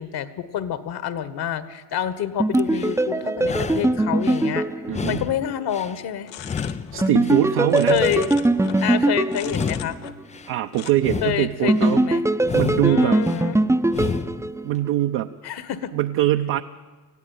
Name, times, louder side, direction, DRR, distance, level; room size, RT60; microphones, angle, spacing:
voice 1, 0.0-4.7 5.1-6.3 7.9-8.3 8.8-10.0 11.2-12.2 12.8-13.6 15.4-15.9, left 10 dB, 50° left, 13 dB, 1.8 m, -27 dB
sound 1, 2.4-5.5 7.0-10.2 11.7-15.0, right 2 dB, 5° right, 0.9 m, -21 dB
sound 2, 2.5-3.0 3.4-4.5 4.9-6.0 6.4-7.5 7.9-9.0 9.4-10.5 10.9-12.0 12.4-13.4 13.9-14.5, left 6 dB, 15° left, 0.5 m, -31 dB
voice 2, 4.9-5.2 6.9-8.0 10.5-12.0 12.5-13.2 14.6-15.3 15.9-16.6, right 13 dB, 50° right, 4 dB, 1.0 m, -22 dB
sound 3, 6.2-7.2 7.4-8.9 9.3-10.4 10.7-10.9, left 11 dB, 75° left, 1.4 m, -39 dB
20.5 x 14.5 x 9.2 m, 1.3 s
hypercardioid pair, 90°, 50 cm